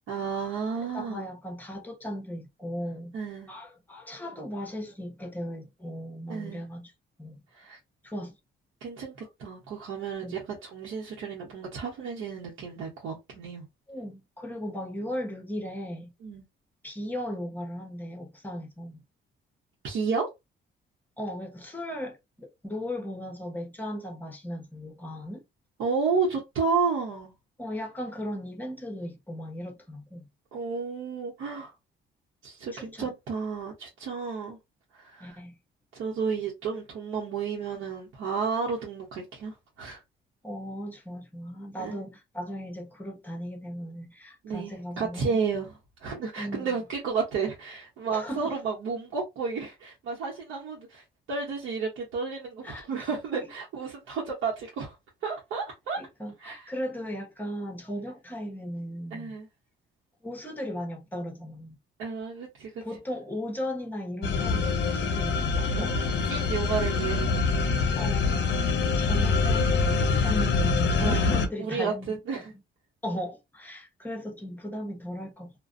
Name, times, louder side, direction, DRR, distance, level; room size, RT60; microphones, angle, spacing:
voice 1, 0.1-1.3 3.1-3.5 6.3-6.6 7.5-7.8 8.8-13.6 16.2-16.5 19.8-20.3 25.8-27.3 30.5-31.7 32.4-34.6 34.9-35.4 35.9-40.0 41.8-42.0 44.4-54.9 55.2-56.0 56.4-56.7 59.1-59.5 62.0-62.7 65.8-67.8 68.1-68.3 71.0-71.3 71.6-72.5, right 5 dB, 80° right, 0.9 m, -32 dB
voice 2, 0.9-3.1 3.5-6.9 7.2-7.4 8.0-8.3 10.2-10.4 13.9-16.1 16.8-19.0 21.2-25.4 27.6-30.3 32.7-33.1 35.2-35.5 40.4-45.4 46.4-46.8 48.1-48.6 52.6-52.9 53.4-53.5 56.0-59.4 60.2-61.8 62.8-66.0 66.7-66.8 67.9-72.6 73.0-75.5, equal, 10° left, 1.0 m, -37 dB
sound 1, 64.2-71.5, left 4 dB, 65° left, 0.6 m, -25 dB
2.4 x 2.2 x 2.5 m
cardioid pair, 90°, 20 cm